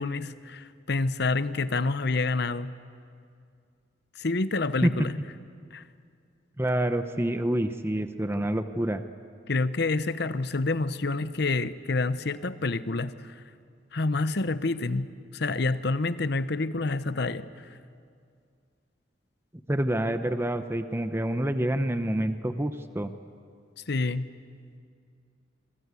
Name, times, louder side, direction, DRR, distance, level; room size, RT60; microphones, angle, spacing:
voice 1, 0.0-2.7 4.2-5.2 5.7-5.8 9.5-13.3 13.9-17.5 23.9-24.3, left 3 dB, 60° left, 13 dB, 0.9 m, -28 dB
voice 2, 6.6-9.0 19.7-23.1, right 1 dB, 15° right, 9 dB, 0.8 m, -27 dB
27.0 x 24.0 x 8.4 m, 2.3 s
head